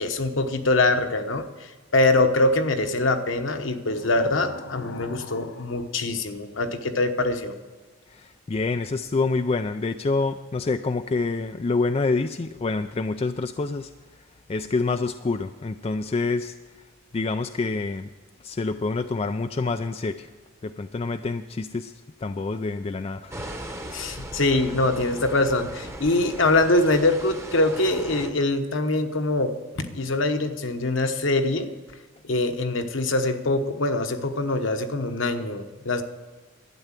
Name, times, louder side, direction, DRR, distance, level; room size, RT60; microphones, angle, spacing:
voice 1, 0.0-7.5 23.9-31.7 32.2-36.0, left 2 dB, 65° left, 7 dB, 1.1 m, -23 dB
voice 2, 8.1-13.9 14.5-16.6 17.1-18.1 18.4-20.3 20.6-21.9 22.2-23.4, left 3 dB, 30° left, 8 dB, 0.3 m, -27 dB
sound 1, 23.3-28.3, right 1 dB, 15° right, 0.9 m, -38 dB
12.0 x 9.3 x 7.4 m, 1.4 s
head